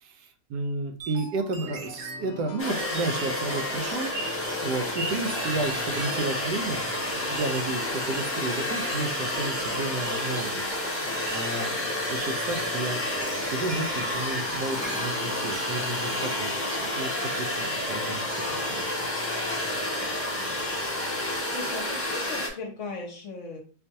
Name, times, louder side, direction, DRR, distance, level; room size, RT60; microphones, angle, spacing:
voice 1, 0.0-4.1 4.6-10.7 11.3-13.0 13.4-19.2, right 3 dB, 85° right, 5 dB, 1.2 m, -32 dB
sound 1, 1.0-2.3 2.8-4.6 5.1-6.5 7.3-8.4 8.9-11.0 11.3-11.5 12.2-12.7 13.2-14.5 14.8-15.2 15.5-15.9, right 4 dB, 60° right, 0.7 m, -41 dB
sound 2, 1.6-21.4, left 4 dB, 90° left, 0.6 m, -45 dB
sound 3, 2.6-22.5, left 1 dB, 20° left, 0.3 m, -30 dB
voice 2, 21.5-23.6, left 3 dB, 60° left, 2 dB, 0.9 m, -37 dB
4.4 x 2.4 x 2.7 m, 0.41 s
omnidirectional pair, 1.7 m